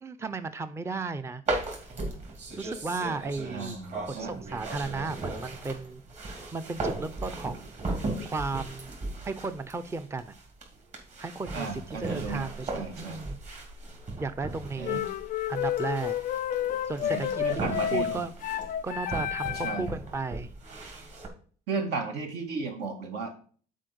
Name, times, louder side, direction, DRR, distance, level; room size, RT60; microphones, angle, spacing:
voice 1, 0.0-1.4 2.6-3.8 4.1-6.0 6.5-7.7 8.3-8.9 9.2-10.3 11.2-11.7 12.0-13.4 14.2-15.0 15.5-16.1 16.9-17.4 17.7-18.3 18.8-20.5, right 3 dB, 15° right, 11 dB, 0.5 m, -34 dB
sound 1, 1.5-21.3, right 2 dB, 45° right, 2.6 m, -37 dB
voice 2, 3.4-4.3 11.5-12.4 12.7-13.2 14.8-15.1 17.0-18.2 19.6-19.9 21.7-23.3, right 4 dB, 80° right, 4 dB, 2.0 m, -34 dB
sound 2, 14.8-19.9, left 10 dB, 55° left, 0.4 m, -30 dB
7.3 x 4.5 x 6.9 m, 0.43 s
cardioid pair, 110°, 17 cm